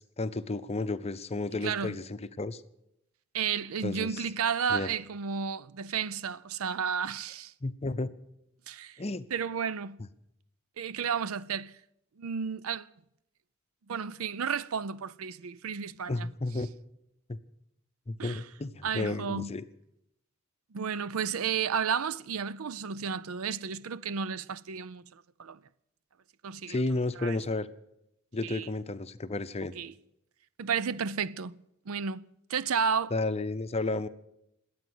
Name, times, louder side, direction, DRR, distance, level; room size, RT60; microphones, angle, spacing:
voice 1, 0.0-2.6 3.8-4.3 4.7-4.9 7.6-8.1 9.0-9.3 16.1-16.7 17.3-17.4 18.1-19.6 26.7-27.7 28.3-29.7 33.1-34.1, left 2 dB, 30° left, 0.7 m, -32 dB
voice 2, 1.6-1.9 3.3-7.5 8.7-9.0 9.3-10.0 10.8-11.7 12.2-12.9 13.9-16.3 18.2-18.4 18.8-19.5 20.7-25.6 26.4-26.8 27.2-27.4 28.4-28.7 29.8-29.9 30.6-31.5 31.9-33.1, right 6 dB, 85° right, 0.5 m, -32 dB
21.0 x 8.7 x 8.0 m
head